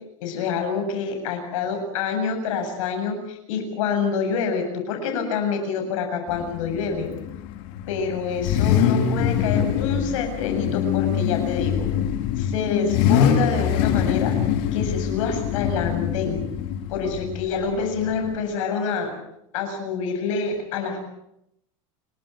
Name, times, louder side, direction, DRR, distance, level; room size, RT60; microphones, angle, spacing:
voice 1, 0.2-7.1 7.9-11.9 12.4-14.3 14.7-16.4 16.9-19.1 19.5-21.1, left 5 dB, 75° left, 5 dB, 7.5 m, -27 dB
Car / Idling / Accelerating revving vroom, 6.3-18.4, left 9 dB, 60° left, 2.6 m, -24 dB
29.5 x 13.0 x 8.6 m, 0.80 s
supercardioid pair, 125°, 17 cm